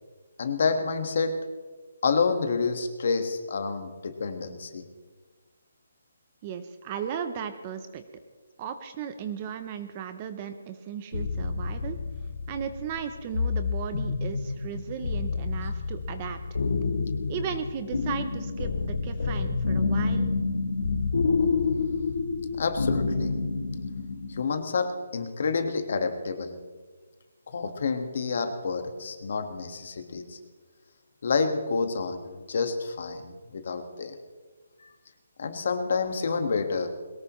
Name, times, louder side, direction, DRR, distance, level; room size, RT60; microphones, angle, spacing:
voice 1, 0.4-1.4 2.0-4.8 22.6-23.4 24.3-26.6 27.5-30.4 31.2-34.2 34.8-34.9 35.4-36.9, left 4 dB, 45° left, 7 dB, 1.6 m, -28 dB
voice 2, 6.4-8.0 8.6-12.0 12.5-16.6 17.3-20.3, right 8 dB, 20° right, 9 dB, 0.6 m, -36 dB
sound 1, 11.1-24.5, left 4 dB, 80° left, 2.2 m, -28 dB
22.0 x 19.0 x 3.1 m, 1.4 s
hypercardioid pair, 175°, 0 cm